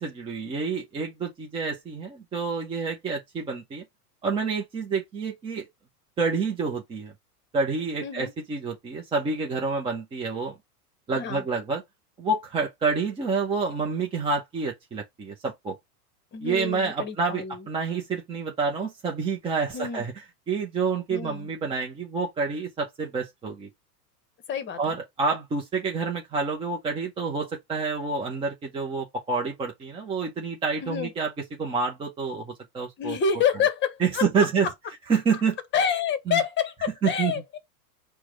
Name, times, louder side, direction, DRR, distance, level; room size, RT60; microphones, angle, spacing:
voice 1, 0.0-3.8 4.2-5.7 6.2-7.1 7.5-10.5 11.1-11.8 12.2-15.8 16.4-20.1 20.5-23.7 24.8-31.3 31.6-33.2 34.0-34.7 35.1-35.6 36.3-36.4 37.0-37.3, right 4 dB, 10° right, 0.5 m, -28 dB
voice 2, 8.0-8.3 11.1-11.4 16.3-17.7 19.7-20.0 21.1-21.5 24.5-24.8 30.8-31.1 33.0-34.5 35.7-37.6, left 7 dB, 25° left, 0.9 m, -28 dB
4.6 x 2.2 x 4.6 m
hypercardioid pair, 115°, 48 cm